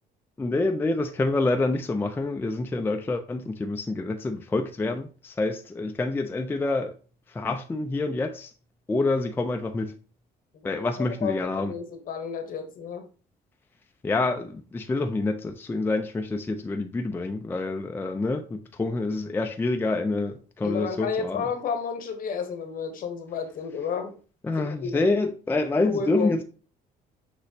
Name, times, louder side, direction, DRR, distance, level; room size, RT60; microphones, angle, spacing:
voice 1, 0.4-6.9 7.3-8.5 8.9-9.9 10.6-11.7 14.0-21.4 24.4-26.4, left 2 dB, 10° left, 0.4 m, -27 dB
voice 2, 11.2-13.1 20.6-24.1 24.6-25.1 25.8-26.4, left 6 dB, 55° left, 0.9 m, -31 dB
6.3 x 2.9 x 2.7 m
cardioid pair, 110°, 17 cm